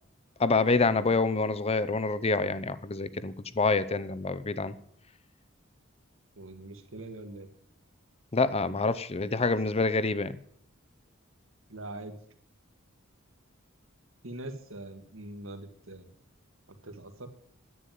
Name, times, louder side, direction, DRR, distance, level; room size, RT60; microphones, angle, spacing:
voice 1, 0.4-4.7 8.3-10.4, left 3 dB, 30° left, 16 dB, 0.6 m, -27 dB
voice 2, 6.4-7.5 11.7-12.2 14.2-16.1 16.8-17.3, right 2 dB, 75° right, 7 dB, 1.8 m, -42 dB
10.0 x 9.2 x 9.4 m, 0.69 s
head